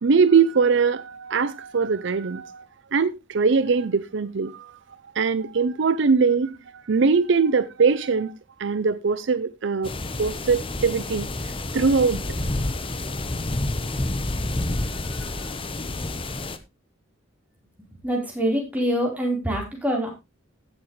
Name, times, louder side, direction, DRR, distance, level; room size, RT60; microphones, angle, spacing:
voice 1, 0.0-2.6 2.9-4.7 5.2-8.3 8.6-9.9 10.2-11.3 11.7-12.4, right 5 dB, 65° right, 0.5 m, -21 dB
sound 1, 9.8-16.6, left 2 dB, 25° left, 0.9 m, -29 dB
voice 2, 17.9-20.1, equal, 10° right, 4.0 m, -25 dB
16.0 x 7.1 x 3.1 m
head